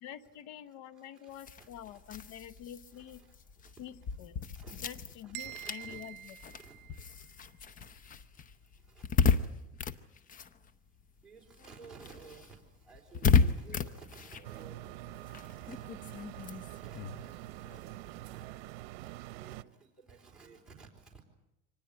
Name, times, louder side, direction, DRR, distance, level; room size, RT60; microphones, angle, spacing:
voice 1, 0.0-3.2 3.8-4.4 4.8-6.4, left 10 dB, 60° left, 14 dB, 1.2 m, -47 dB
voice 2, 1.0-2.4 2.9-3.4 3.6-3.9 4.5-4.8 5.2-6.1 6.5-6.8 8.9-9.1 9.3-9.5 11.2-15.9 16.5-18.7 19.0-21.2, right 5 dB, ahead, -4 dB, 4.1 m, -55 dB
sound 1, 1.3-11.2 11.5-18.5, left 6 dB, 30° left, 0.9 m, -34 dB
sound 2, 5.3-7.3, right 15 dB, 55° right, 1.0 m, -46 dB
sound 3, 14.4-19.6, right 16 dB, 80° right, 0.8 m, -45 dB
25.0 x 19.5 x 8.3 m, 0.91 s
supercardioid pair, 135°, 29 cm